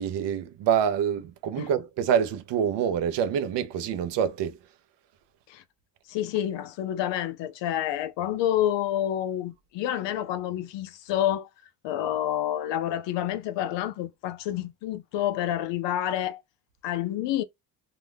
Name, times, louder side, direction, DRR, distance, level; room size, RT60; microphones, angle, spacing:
voice 1, 0.0-4.6, right 8 dB, 75° right, 0.7 m, -26 dB
voice 2, 6.1-11.5 11.8-16.4 16.8-17.4, left 12 dB, 80° left, 0.6 m, -28 dB
2.5 x 2.1 x 3.3 m
cardioid pair, 90°, 43 cm